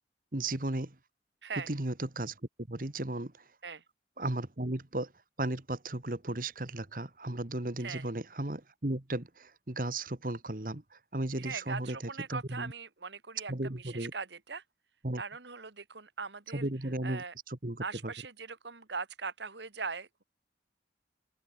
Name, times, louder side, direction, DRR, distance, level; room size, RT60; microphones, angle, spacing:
voice 1, 0.3-1.0 1.7-3.5 4.2-5.1 5.4-12.0 12.3-12.7 13.5-14.1 15.0-15.2 16.5-18.1, right 1 dB, 50° right, 1.6 m, -35 dB
voice 2, 1.4-1.7 3.6-3.8 7.8-8.1 11.4-13.5 13.8-14.6 15.2-16.6 17.0-17.3 17.8-20.2, right 5 dB, 85° right, 1.9 m, -40 dB
open air
head